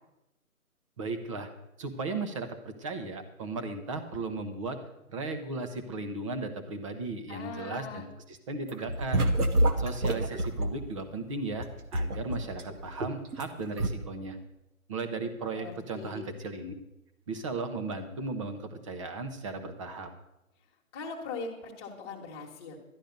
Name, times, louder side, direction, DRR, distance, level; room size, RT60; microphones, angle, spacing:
voice 1, 1.0-1.5 1.8-4.8 5.1-9.3 9.8-11.7 11.9-14.4 14.9-16.7 17.3-20.1, right 3 dB, 20° right, 7 dB, 1.0 m, -36 dB
voice 2, 7.3-8.0 15.5-16.2 20.9-22.8, left 4 dB, 20° left, -1 dB, 1.7 m, -40 dB
sound 1, 8.7-10.7 11.5-13.5 13.8-13.9, right 1 dB, 85° right, 1.6 m, -27 dB
12.0 x 11.5 x 5.3 m, 0.90 s
hypercardioid pair, 160°, 44 cm